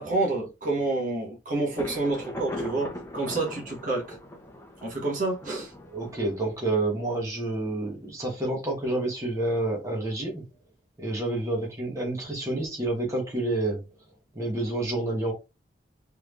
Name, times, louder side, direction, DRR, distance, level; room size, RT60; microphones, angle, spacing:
voice 1, 0.0-4.2 4.8-5.7, right 2 dB, 45° right, 1.4 m, -28 dB
Thunder, 1.8-7.4, left 1 dB, 15° left, 0.8 m, -40 dB
voice 2, 5.9-10.4 11.0-13.8 14.3-15.3, right 2 dB, 15° right, 1.2 m, -29 dB
4.0 x 3.3 x 2.6 m
head